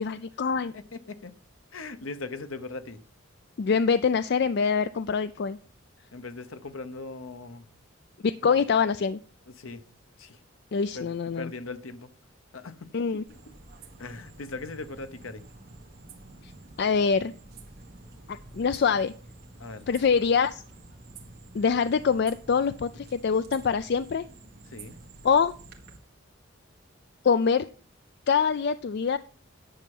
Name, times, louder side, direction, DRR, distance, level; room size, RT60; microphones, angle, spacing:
voice 1, 0.0-0.7 3.6-5.6 8.2-9.2 10.7-11.5 12.9-13.2 16.8-17.3 18.3-19.1 19.9-20.6 21.5-24.2 25.2-25.5 27.2-27.7 28.3-29.2, left 6 dB, 55° left, 0.4 m, -24 dB
voice 2, 0.7-1.3 1.7-3.0 6.1-7.7 8.4-8.6 9.6-9.8 10.2-10.4 10.9-12.1 12.5-12.9 13.3-13.4 14.0-15.4 19.6-19.9 24.7-24.9, left 3 dB, 80° left, 1.0 m, -39 dB
sound 1, 13.3-26.0, right 2 dB, 50° right, 1.8 m, -49 dB
10.5 x 6.8 x 5.4 m
head